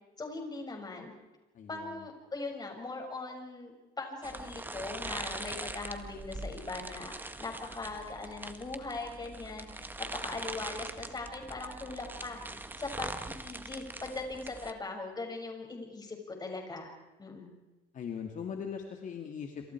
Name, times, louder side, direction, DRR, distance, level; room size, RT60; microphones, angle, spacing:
voice 1, 0.2-1.1 1.7-7.1 7.4-12.4 12.8-16.9 17.2-17.5, left 3 dB, 25° left, 2 dB, 6.8 m, -40 dB
voice 2, 1.5-2.0 17.9-19.7, left 7 dB, 50° left, 3 dB, 2.6 m, -40 dB
sound 1, 4.2-14.7, right 2 dB, 10° right, 1.7 m, -42 dB
27.5 x 27.0 x 4.8 m, 1.1 s
cardioid pair, 110°, 17 cm